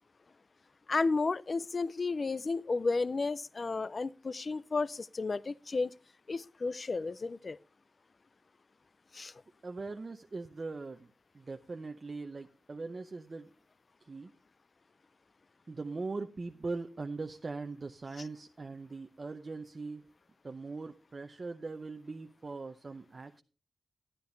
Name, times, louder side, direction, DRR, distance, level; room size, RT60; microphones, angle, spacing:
voice 1, 0.9-5.9 6.3-7.6 9.1-9.3, left 3 dB, 40° left, 0.4 m, -32 dB
voice 2, 9.6-11.1 11.3-13.5 14.0-14.3 15.7-20.1 20.4-23.4, right 3 dB, 35° right, 0.7 m, -41 dB
11.5 x 11.5 x 3.3 m
wide cardioid pair, 120°, 0 cm